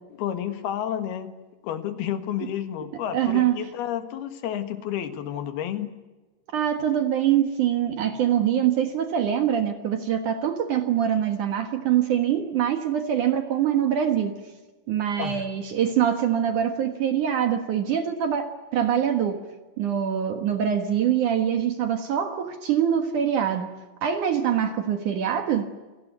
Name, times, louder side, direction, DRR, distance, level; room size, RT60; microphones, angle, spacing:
voice 1, 0.1-1.4 1.6-6.0 15.2-15.4, left 10 dB, 70° left, 10 dB, 3.4 m, -31 dB
voice 2, 3.1-3.7 6.5-14.4 14.9-19.4 19.8-23.7 24.0-25.7, right 9 dB, 60° right, 8 dB, 2.4 m, -24 dB
28.5 x 19.0 x 9.2 m, 1.2 s
omnidirectional pair, 4.9 m